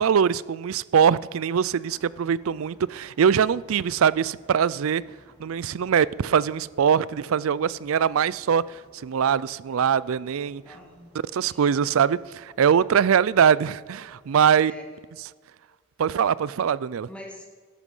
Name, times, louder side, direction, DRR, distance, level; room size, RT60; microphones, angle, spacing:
voice 1, 0.0-5.0 5.4-8.6 9.0-10.6 11.3-14.7 16.0-17.1, right 7 dB, 80° right, 0.4 m, -22 dB
sound 1, 1.8-14.8, equal, 15° right, 3.7 m, -58 dB
voice 2, 10.6-11.9 14.5-14.9 17.1-17.5, left 1 dB, 5° left, 1.9 m, -45 dB
13.5 x 11.0 x 5.5 m
head